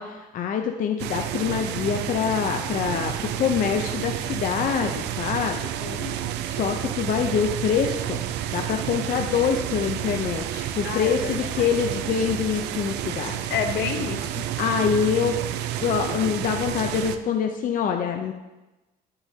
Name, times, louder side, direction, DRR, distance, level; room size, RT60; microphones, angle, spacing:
voice 1, 0.0-5.6 6.4-8.2 8.5-13.4 14.6-15.4 15.8-18.3, left 7 dB, 55° left, 4 dB, 0.7 m, -25 dB
sound 1, 1.0-17.2, right 11 dB, 85° right, 0.5 m, -30 dB
voice 2, 5.8-6.3 10.8-11.7 13.5-14.5, left 7 dB, 70° left, 6 dB, 1.0 m, -30 dB
13.0 x 6.9 x 2.8 m, 1.0 s
cardioid pair, 110°, 17 cm